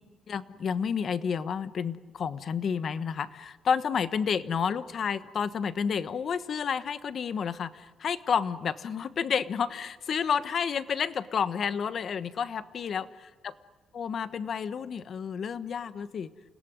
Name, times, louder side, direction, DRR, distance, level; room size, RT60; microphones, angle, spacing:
voice 1, 0.3-13.1 13.9-16.3, left 7 dB, 50° left, 13 dB, 1.2 m, -30 dB
29.5 x 18.0 x 9.5 m, 1.3 s
cardioid pair, 125°, 0 cm